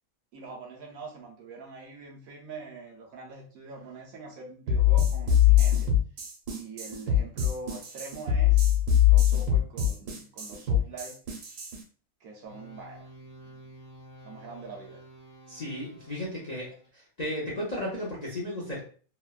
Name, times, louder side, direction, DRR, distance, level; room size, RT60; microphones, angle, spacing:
voice 1, 0.3-5.9 6.5-11.2 12.2-13.1 14.2-15.0, right 3 dB, 70° right, -1 dB, 1.0 m, -44 dB
sound 1, 4.7-11.8, left 10 dB, 90° right, 1.3 m, -22 dB
sound 2, 12.4-16.9, right 1 dB, 30° right, 1.2 m, -50 dB
voice 2, 15.5-18.8, left 1 dB, 40° left, -6 dB, 0.6 m, -34 dB
3.1 x 2.1 x 2.3 m, 0.41 s
omnidirectional pair, 1.6 m